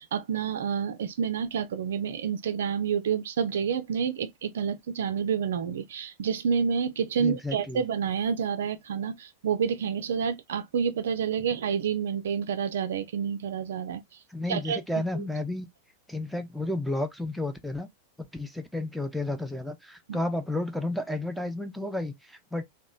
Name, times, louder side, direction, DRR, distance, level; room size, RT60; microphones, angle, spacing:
voice 1, 0.0-14.0 14.5-14.8 20.1-20.2, right 7 dB, 60° right, 0.3 m, -29 dB
voice 2, 7.2-7.8 14.3-15.7 16.1-17.9 18.3-22.6, left 1 dB, ahead, 0.4 m, -32 dB
2.9 x 2.1 x 2.3 m
figure-of-eight pair, 90°, 0 cm